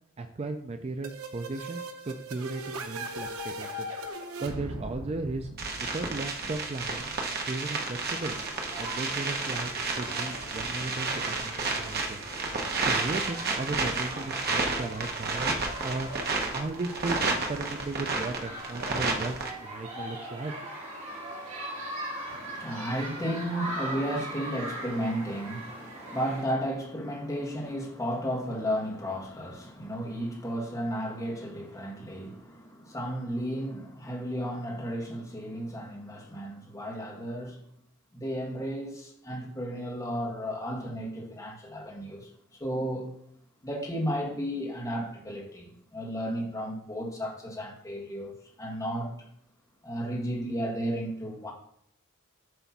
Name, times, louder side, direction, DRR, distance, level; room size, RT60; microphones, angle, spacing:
voice 1, 0.2-3.9 4.4-5.5 5.8-7.1 7.5-8.4 8.8-9.7 10.0-12.2 12.9-15.6 15.8-16.1 16.5-20.5, right 3 dB, 30° right, 6 dB, 0.4 m, -36 dB
sound 1, 1.0-6.7, right 1 dB, 90° right, 0.8 m, -39 dB
sound 2, 5.6-19.5, right 3 dB, 50° right, 1.1 m, -31 dB
sound 3, 7.6-26.4, right 1 dB, 70° right, 2.5 m, -41 dB
voice 2, 22.3-37.6 38.1-42.3 42.6-43.1 43.6-49.1 49.8-51.5, equal, 15° left, -2 dB, 1.7 m, -33 dB
8.0 x 3.4 x 5.8 m, 0.69 s
head